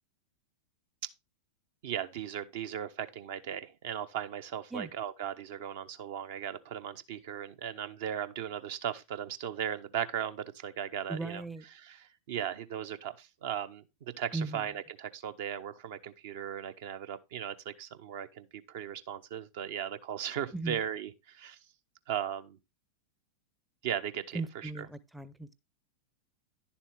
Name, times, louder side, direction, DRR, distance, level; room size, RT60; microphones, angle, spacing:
voice 1, 1.8-11.4 11.7-21.6 22.1-22.6 23.8-24.9, right 9 dB, 50° right, 0.7 m, -37 dB
voice 2, 11.1-11.6 14.3-14.7 20.5-20.8 24.3-25.5, right 3 dB, 5° right, 0.6 m, -37 dB
10.5 x 7.1 x 3.3 m
figure-of-eight pair, 90°, 0 cm